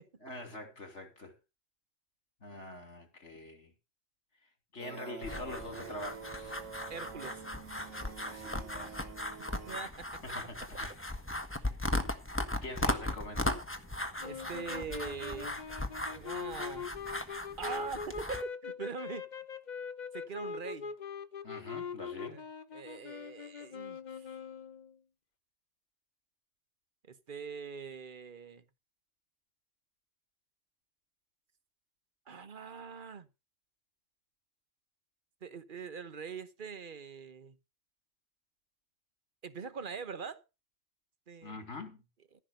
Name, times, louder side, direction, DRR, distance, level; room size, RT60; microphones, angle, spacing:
voice 1, 0.2-1.3 2.4-3.7 4.7-6.6 8.0-9.0 10.3-10.9 12.6-13.7 21.4-22.4 41.4-42.0, left 2 dB, 60° left, 3.3 m, -44 dB
sound 1, 4.8-9.8, right 7 dB, 70° right, 1.3 m, -47 dB
sound 2, 5.2-18.4, left 1 dB, 10° left, 1.3 m, -38 dB
voice 2, 6.9-7.4 9.5-10.2 14.2-15.6 16.0-16.9 17.6-19.3 20.1-20.9 22.3-22.4 22.7-24.4 27.0-28.6 32.3-33.3 35.4-37.6 39.4-40.4 41.3-41.6, right 5 dB, 40° right, 1.2 m, -43 dB
sound 3, 14.2-25.0, left 6 dB, 40° left, 0.8 m, -42 dB
15.0 x 6.1 x 6.5 m
omnidirectional pair, 1.4 m